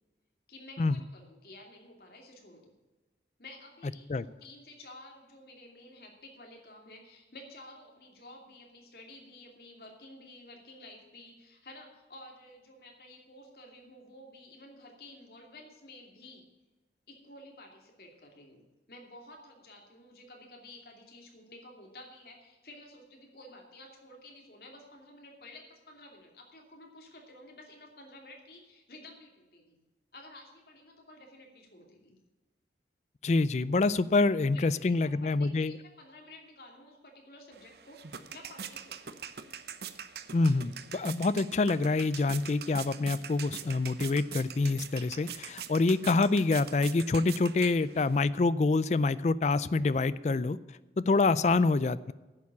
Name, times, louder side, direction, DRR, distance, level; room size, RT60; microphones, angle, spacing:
voice 1, 0.5-2.7 3.4-16.4 17.1-29.8 30.1-32.2 34.2-39.2, left 1 dB, 60° left, 1 dB, 2.6 m, -52 dB
voice 2, 33.2-35.8 40.3-50.6 51.0-52.1, left 3 dB, 40° left, 16 dB, 0.4 m, -26 dB
sound 1, 37.5-48.2, right 8 dB, 65° right, 0.7 m, -44 dB
10.5 x 7.3 x 8.3 m, 1.2 s
head